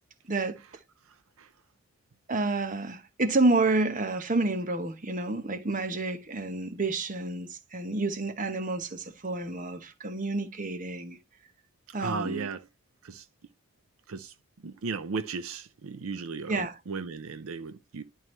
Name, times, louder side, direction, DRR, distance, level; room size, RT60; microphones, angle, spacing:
voice 1, 0.3-0.6 2.3-11.2 11.9-12.5 16.5-16.8, right 2 dB, 35° right, 0.9 m, -29 dB
voice 2, 12.0-12.6 13.0-13.3 14.1-14.3 14.6-18.0, right 4 dB, 70° right, 0.5 m, -35 dB
11.0 x 4.6 x 3.2 m
head